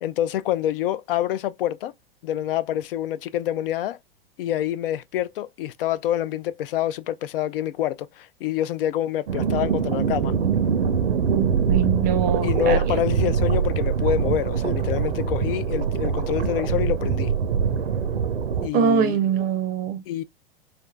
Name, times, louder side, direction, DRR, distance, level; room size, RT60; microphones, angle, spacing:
voice 1, 0.0-1.9 2.2-4.0 4.4-10.3 12.4-17.3 18.6-19.2 20.1-20.2, left 12 dB, 65° left, 0.5 m, -26 dB
sound 1, 9.3-18.7, right 6 dB, 90° right, 0.7 m, -23 dB
voice 2, 11.1-13.0 18.7-20.0, right 7 dB, 30° right, 0.5 m, -23 dB
3.4 x 2.5 x 2.2 m
hypercardioid pair, 110°, 30 cm